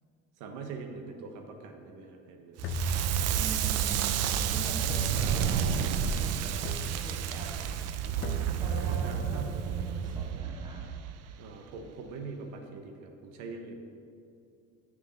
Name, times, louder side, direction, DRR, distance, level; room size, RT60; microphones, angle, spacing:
voice 1, 0.4-2.7 8.9-9.6 11.4-13.8, right 4 dB, 70° right, 3 dB, 1.1 m, -43 dB
sound 1, 2.6-3.8 4.9-5.7 6.6-7.3 8.2-8.9, left 8 dB, 40° left, 0.5 m, -41 dB
Crackle, 2.6-11.6, right 8 dB, 50° right, 0.6 m, -30 dB
voice 2, 3.3-4.2 4.5-7.8 8.6-10.8, right 1 dB, 15° right, -3 dB, 1.3 m, -43 dB
7.2 x 6.9 x 5.7 m, 2.5 s
cardioid pair, 125°, 31 cm